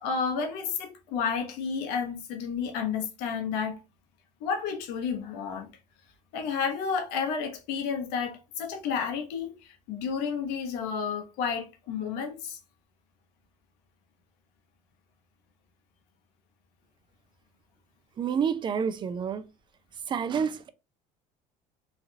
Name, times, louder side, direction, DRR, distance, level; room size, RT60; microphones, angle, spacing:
voice 1, 0.0-3.8 4.4-5.7 6.3-12.6, left 6 dB, 80° left, 0.9 m, -31 dB
voice 2, 18.2-19.4 20.1-20.7, right 7 dB, 30° right, 0.4 m, -28 dB
3.1 x 2.4 x 2.7 m
cardioid pair, 115°, 17 cm